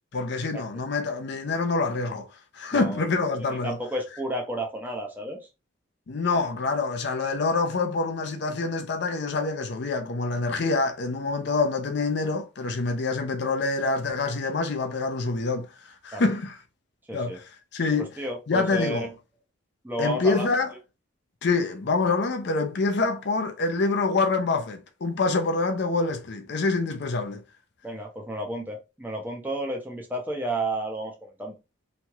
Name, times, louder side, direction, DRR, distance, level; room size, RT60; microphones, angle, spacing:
voice 1, 0.1-2.3 2.5-3.8 6.1-16.6 17.1-18.1 18.5-19.1 20.0-20.7 21.4-27.4, left 3 dB, 55° left, 0.5 m, -26 dB
voice 2, 2.7-3.0 3.6-5.4 16.1-16.2 17.1-17.4 18.2-19.1 19.8-20.5 27.8-31.5, right 1 dB, 10° right, 0.6 m, -31 dB
3.0 x 2.8 x 2.3 m
head